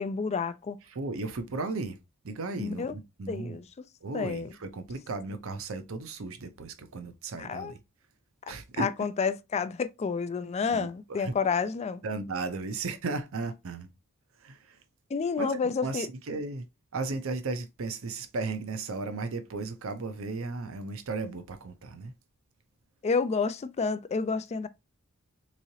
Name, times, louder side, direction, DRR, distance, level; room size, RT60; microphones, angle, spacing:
voice 1, 0.0-0.8 2.6-3.0 3.3-3.6 4.1-4.5 7.4-7.7 8.8-12.0 15.1-16.1 23.0-24.7, left 5 dB, 30° left, 0.3 m, -30 dB
voice 2, 0.9-2.0 2.2-3.6 4.0-7.8 8.5-8.9 10.7-10.9 11.2-11.3 12.0-13.9 14.4-14.8 15.4-16.7 16.9-22.1, right 3 dB, 70° right, 0.6 m, -35 dB
3.7 x 3.0 x 2.7 m
head